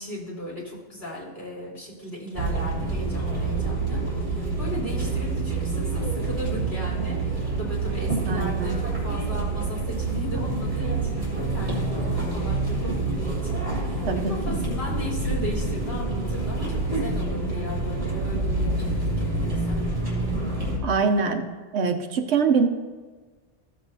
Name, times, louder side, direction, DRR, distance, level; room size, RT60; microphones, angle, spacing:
voice 1, 0.0-19.8, left 1 dB, 60° left, -7 dB, 3.7 m, -36 dB
sound 1, 2.3-20.8, right 3 dB, 40° right, 3.2 m, -27 dB
voice 2, 8.2-8.8 14.1-14.6 20.8-21.5 21.7-22.7, right 5 dB, 70° right, 5 dB, 1.0 m, -24 dB
14.5 x 7.6 x 2.7 m, 1.4 s
omnidirectional pair, 1.2 m